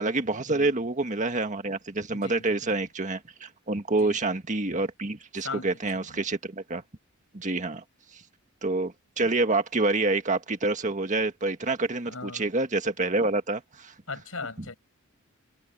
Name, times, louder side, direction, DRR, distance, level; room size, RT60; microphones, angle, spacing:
voice 1, 0.0-6.8 7.3-7.8 8.1-8.2 8.6-13.9, right 2 dB, 35° right, 1.7 m, -27 dB
voice 2, 2.1-2.8 3.9-4.2 5.4-6.2 12.0-12.5 14.1-14.7, left 3 dB, 75° left, 6.6 m, -40 dB
head